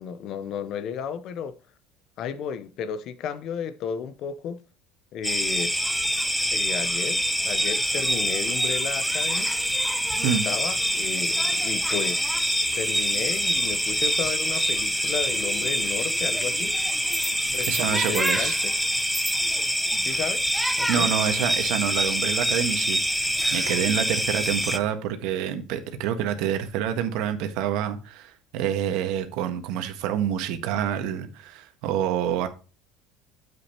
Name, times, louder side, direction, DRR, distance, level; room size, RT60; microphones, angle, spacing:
voice 1, 0.0-1.5 2.2-4.6 5.1-5.8 6.5-9.5 10.2-16.8 17.5-18.5 20.0-20.4 20.8-21.1, left 7 dB, 55° left, 0.8 m, -33 dB
sound 1, 5.2-24.8, equal, ahead, 0.8 m, -25 dB
voice 2, 17.7-18.6 20.9-32.5, right 9 dB, 70° right, 1.5 m, -27 dB
8.8 x 7.6 x 2.9 m
supercardioid pair, 105°, 0 cm